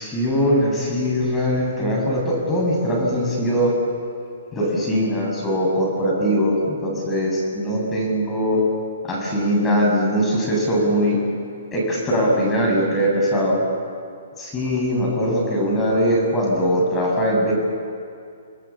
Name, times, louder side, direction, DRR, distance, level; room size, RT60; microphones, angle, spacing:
voice 1, 0.0-3.7 4.5-8.6 9.1-11.2 11.7-13.6 14.4-17.5, equal, 15° left, -3 dB, 7.6 m, -21 dB
30.0 x 20.0 x 7.3 m, 2.3 s
figure-of-eight pair, 125°, 0 cm